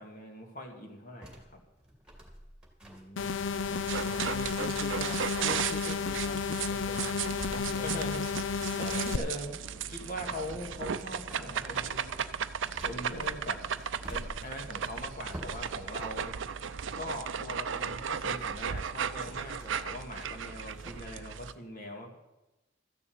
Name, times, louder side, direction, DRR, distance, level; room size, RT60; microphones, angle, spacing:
voice 1, 0.0-1.6 3.6-3.8 7.8-8.2 8.8-12.2 12.8-13.6 14.1-16.3 16.9-22.2, left 1 dB, 45° left, 2 dB, 2.3 m, -41 dB
sound 1, 1.2-17.1 17.5-21.1, right 1 dB, 5° right, 2.4 m, -50 dB
voice 2, 2.8-3.4 3.8-7.2 7.5-8.0, left 2 dB, 30° left, 5 dB, 0.8 m, -45 dB
sound 2, 3.2-9.2, left 5 dB, 70° left, 0.5 m, -32 dB
sound 3, 3.9-21.5, right 7 dB, 70° right, 0.5 m, -36 dB
13.5 x 6.9 x 8.8 m, 1.0 s
head